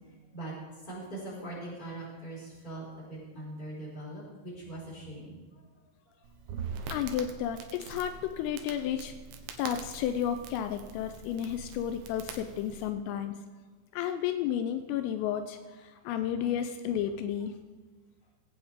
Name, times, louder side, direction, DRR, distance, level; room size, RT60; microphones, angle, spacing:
voice 1, 0.8-5.4 6.1-6.2, right 2 dB, 10° left, -7 dB, 4.4 m, -41 dB
Crackle, 6.2-12.9, right 6 dB, 75° right, 3.0 m, -43 dB
voice 2, 6.9-9.1 9.6-13.4 13.9-17.6, left 9 dB, 85° left, 9 dB, 3.1 m, -32 dB
20.0 x 8.6 x 3.6 m, 1.3 s
omnidirectional pair, 5.9 m